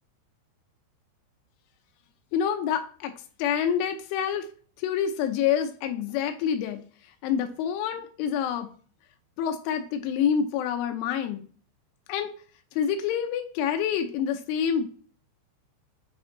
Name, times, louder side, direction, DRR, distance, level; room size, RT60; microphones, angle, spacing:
voice 1, 2.3-3.1 3.4-4.5 4.8-6.8 7.2-8.7 9.4-11.4 12.1-12.3 12.7-14.9, left 8 dB, 90° left, 6 dB, 3.3 m, -27 dB
8.9 x 4.3 x 3.8 m, 0.42 s
omnidirectional pair, 5.4 m